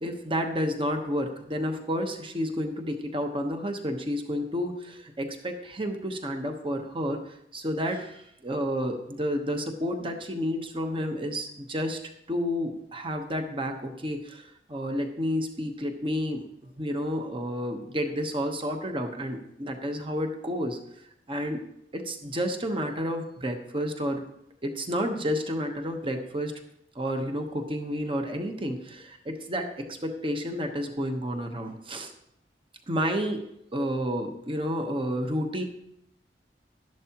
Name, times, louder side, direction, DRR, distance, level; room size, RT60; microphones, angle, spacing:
voice 1, 0.0-7.2 7.5-12.0 12.3-20.8 21.3-21.6 21.9-24.2 24.6-26.5 26.9-32.1 32.9-33.5 33.7-35.6, equal, 30° right, 5 dB, 1.1 m, -30 dB
12.0 x 11.0 x 3.0 m, 0.78 s
head